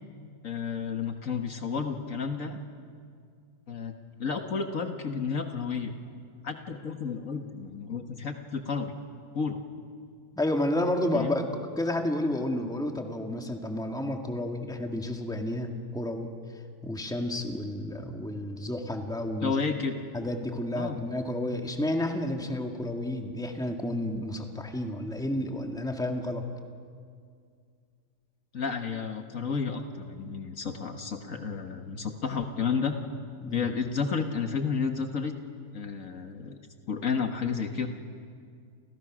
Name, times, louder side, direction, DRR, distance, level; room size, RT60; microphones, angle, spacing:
voice 1, 0.4-2.6 3.7-3.9 4.2-5.9 6.4-8.9 9.3-9.6 11.1-11.3 19.4-20.0 20.8-21.0 28.5-33.0 33.5-35.3 35.7-36.6 36.9-37.9, left 5 dB, 55° left, 5 dB, 1.8 m, -31 dB
voice 2, 10.4-16.3 16.8-19.6 20.1-26.4 30.2-30.3 33.4-33.7, left 1 dB, ahead, 3 dB, 1.9 m, -31 dB
30.0 x 28.5 x 6.2 m, 2.2 s
omnidirectional pair, 1.7 m